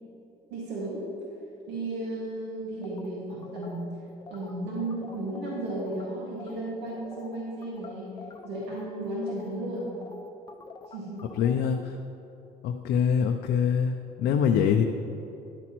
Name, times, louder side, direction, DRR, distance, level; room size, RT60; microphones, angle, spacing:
voice 1, 0.5-1.1 1.7-3.9 4.3-8.1 8.4-9.9 10.9-11.3, right 1 dB, 90° right, -6 dB, 2.0 m, -34 dB
sound 1, 2.8-6.0 6.3-6.6 6.9-11.7, left 3 dB, 25° left, 0.6 m, -47 dB
voice 2, 11.4-12.0 12.6-14.8, left 7 dB, 75° left, 5 dB, 0.5 m, -24 dB
11.0 x 8.1 x 3.0 m, 2.9 s
cardioid pair, 110°, 17 cm